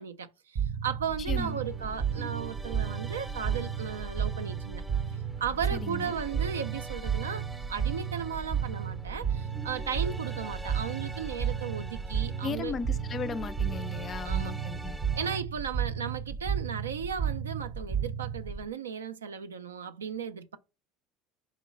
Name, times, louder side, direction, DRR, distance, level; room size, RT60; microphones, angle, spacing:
voice 1, 0.0-4.8 5.4-12.8 14.2-14.5 15.1-20.6, right 7 dB, 85° right, 0.3 m, -36 dB
sound 1, 0.6-18.6, right 7 dB, 55° right, 0.6 m, -33 dB
voice 2, 1.3-1.6 5.7-6.1 12.4-15.0, left 5 dB, 35° left, 0.3 m, -36 dB
sound 2, 1.3-15.4, right 2 dB, 15° right, 0.6 m, -45 dB
4.1 x 2.9 x 3.7 m
hypercardioid pair, 70°, 0 cm